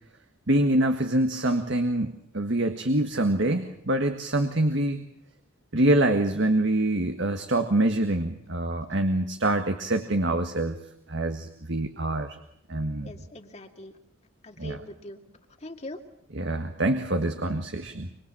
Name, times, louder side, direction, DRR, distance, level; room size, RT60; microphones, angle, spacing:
voice 1, 0.5-5.0 5.7-10.8 11.1-12.4 12.7-13.1 14.6-14.8 16.3-18.1, right 1 dB, 60° right, 6 dB, 1.7 m, -25 dB
voice 2, 13.0-13.9 14.4-15.2 15.6-16.0, left 1 dB, 35° left, 4 dB, 2.2 m, -42 dB
26.0 x 25.0 x 7.5 m, 0.75 s
head